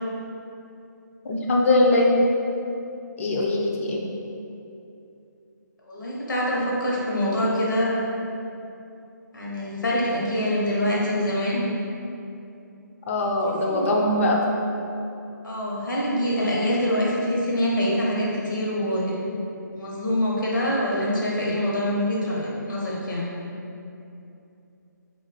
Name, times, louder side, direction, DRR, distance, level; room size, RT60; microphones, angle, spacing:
voice 1, 1.2-2.1 3.2-4.0 13.1-14.4, left 2 dB, 40° left, -1 dB, 0.5 m, -21 dB
voice 2, 5.9-7.9 9.3-11.6 13.4-14.0 15.4-19.2 19.7-23.2, equal, 80° left, -5 dB, 1.0 m, -25 dB
2.5 x 2.5 x 3.9 m, 2.7 s
figure-of-eight pair, 150°, 10 cm